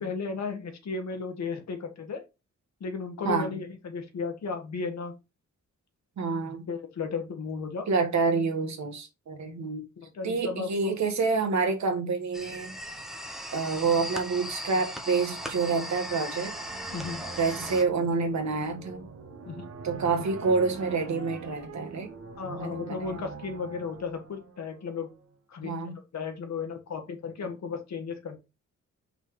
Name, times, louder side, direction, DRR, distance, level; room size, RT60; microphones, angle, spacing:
voice 1, 0.0-2.2 2.8-5.1 6.7-7.9 10.0-11.0 16.9-17.2 19.4-19.7 22.4-25.1 25.5-28.4, left 5 dB, 65° left, 1.6 m, -35 dB
voice 2, 6.2-6.7 7.9-9.8 10.2-12.7 13.5-16.5 17.4-19.0 19.8-22.1 22.6-23.1 25.6-25.9, right 4 dB, 70° right, 1.4 m, -28 dB
sound 1, 12.3-17.8, equal, ahead, 1.0 m, -38 dB
sound 2, 15.2-25.2, right 4 dB, 55° right, 1.2 m, -44 dB
5.4 x 4.1 x 4.6 m
wide cardioid pair, 160°, 29 cm